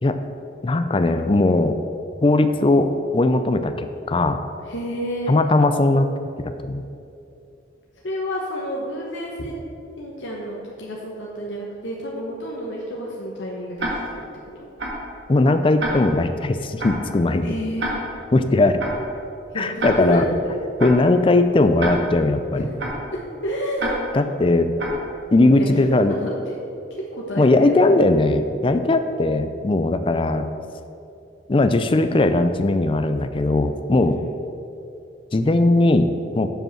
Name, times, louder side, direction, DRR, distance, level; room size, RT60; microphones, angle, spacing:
voice 1, 0.6-1.8 2.2-4.4 5.3-6.1 6.4-6.8 15.3-17.5 18.3-18.8 19.5-20.2 20.8-22.6 24.1-24.7 25.3-26.2 27.4-30.5 31.5-34.2 35.3-36.5, left 2 dB, 30° left, 9 dB, 0.4 m, -19 dB
voice 2, 4.6-5.4 8.0-9.6 10.0-14.3 14.5-14.7 17.4-18.0 19.5-20.5 23.4-24.0 25.4-26.6 26.9-27.7 34.0-34.3, equal, 85° left, -3 dB, 1.0 m, -30 dB
Tick-tock, 13.8-13.9 14.8-14.9 15.8-15.9 16.8-16.9 17.8-17.9 18.8-18.9 19.8-19.9 20.8-20.9 21.8-21.9 22.8-22.9 23.8-23.9 24.8-24.9, right 2 dB, 80° right, 1.7 m, -26 dB
7.4 x 5.2 x 6.4 m, 2.6 s
head